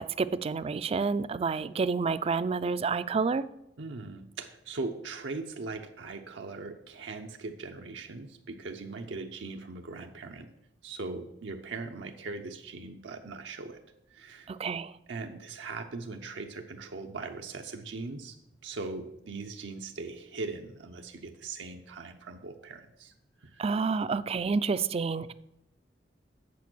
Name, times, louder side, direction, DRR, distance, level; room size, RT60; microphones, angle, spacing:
voice 1, 0.0-3.4 14.5-14.9 23.6-25.3, right 4 dB, 35° right, 15 dB, 0.3 m, -29 dB
voice 2, 3.8-10.5 10.8-13.8 14.1-14.5 15.1-18.4 18.6-23.6, right 3 dB, 80° right, 4 dB, 0.7 m, -40 dB
8.4 x 6.8 x 6.1 m, 0.82 s
head